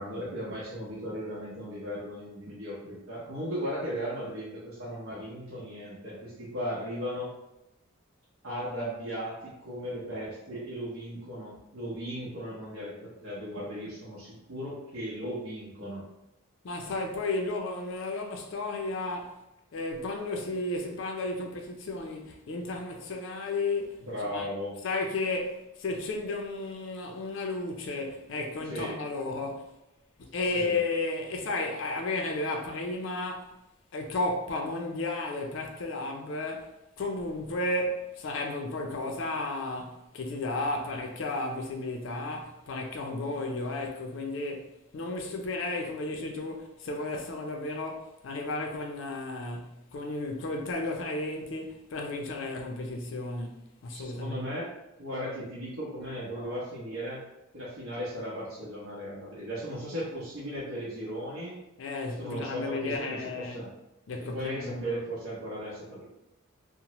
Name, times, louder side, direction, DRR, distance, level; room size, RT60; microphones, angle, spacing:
voice 1, 0.0-7.3 8.4-16.0 24.0-24.7 28.7-28.9 30.5-30.8 53.9-54.6 55.0-57.2 57.5-61.5 62.1-63.7 64.1-66.0, equal, 75° right, 0.8 m, -36 dB
voice 2, 16.6-19.4 19.7-24.0 24.3-24.5 24.8-29.7 30.2-33.5 33.9-36.7 37.0-54.4 61.8-63.6 64.1-64.8, left 2 dB, 60° left, 0.4 m, -33 dB
2.8 x 2.0 x 2.9 m
head